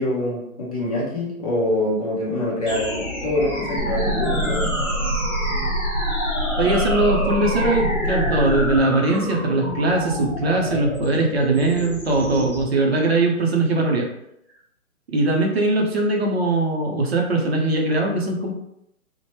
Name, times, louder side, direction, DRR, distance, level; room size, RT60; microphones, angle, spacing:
voice 1, 0.0-4.7, left 1 dB, 25° left, -5 dB, 0.6 m, -25 dB
sound 1, 2.7-12.7, left 1 dB, 5° left, 0.9 m, -28 dB
sound 2, 3.8-8.8, right 1 dB, 85° right, 0.6 m, -26 dB
voice 2, 6.6-14.1 15.1-18.5, right 2 dB, 45° right, 0 dB, 0.6 m, -21 dB
3.0 x 2.1 x 2.9 m, 0.79 s
figure-of-eight pair, 145°, 43 cm